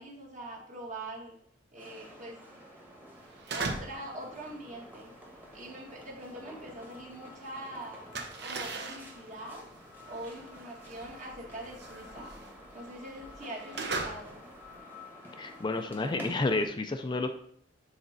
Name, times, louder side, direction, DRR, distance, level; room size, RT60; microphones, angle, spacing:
voice 1, 0.0-1.4 1.7-2.4 3.5-5.1 5.5-8.1 8.4-9.6 10.1-12.4 12.7-14.4, right 1 dB, 45° right, -3 dB, 1.8 m, -43 dB
sound 1, 1.7-16.7, left 1 dB, 10° right, 1.3 m, -49 dB
sound 2, 3.2-4.1 4.4-7.3 7.6-14.8, right 3 dB, 65° right, 0.9 m, -40 dB
voice 2, 15.4-17.3, left 2 dB, 25° left, 6 dB, 0.4 m, -30 dB
7.7 x 4.2 x 4.1 m, 0.65 s
head